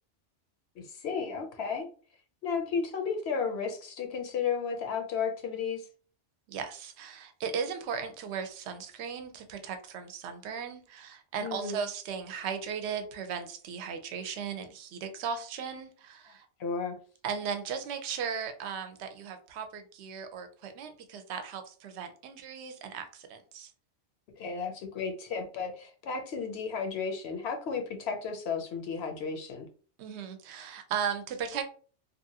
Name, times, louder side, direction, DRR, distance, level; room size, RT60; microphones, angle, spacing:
voice 1, 0.8-1.9 2.4-5.8 11.4-11.8 16.6-17.0 24.4-29.7, left 5 dB, 65° left, 4 dB, 0.8 m, -33 dB
voice 2, 6.5-16.5 17.2-23.7 30.0-31.6, right 7 dB, 70° right, 7 dB, 0.8 m, -37 dB
2.8 x 2.4 x 2.7 m, 0.42 s
omnidirectional pair, 1.2 m